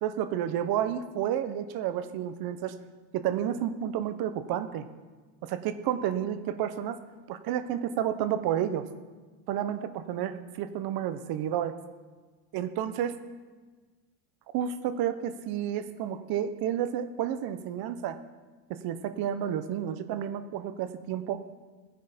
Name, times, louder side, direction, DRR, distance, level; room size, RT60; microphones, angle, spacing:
voice 1, 0.0-2.7 3.1-4.8 5.4-7.0 7.3-8.8 9.5-11.8 12.5-13.2 14.5-18.2 18.7-21.4, right 10 dB, 50° right, 11 dB, 1.0 m, -31 dB
17.0 x 10.5 x 5.2 m, 1.4 s
cardioid pair, 155°, 49 cm